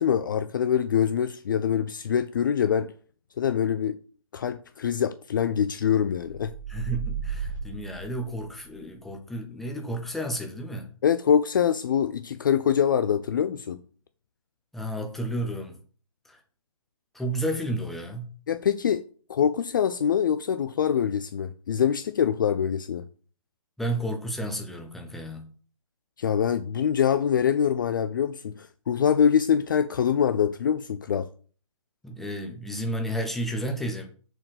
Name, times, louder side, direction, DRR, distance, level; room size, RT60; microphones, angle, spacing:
voice 1, 0.0-2.9 3.4-4.0 4.3-6.5 11.0-13.8 18.5-19.0 19.3-23.0 26.2-31.3, left 8 dB, 35° left, 0.4 m, -24 dB
sound 1, 6.2-8.8, right 7 dB, 70° right, 2.9 m, -34 dB
voice 2, 6.7-10.9 14.7-15.8 16.2-16.4 17.1-18.4 23.8-25.5 32.0-34.1, right 1 dB, ahead, 0.8 m, -32 dB
6.8 x 4.3 x 5.9 m
figure-of-eight pair, 140°, 18 cm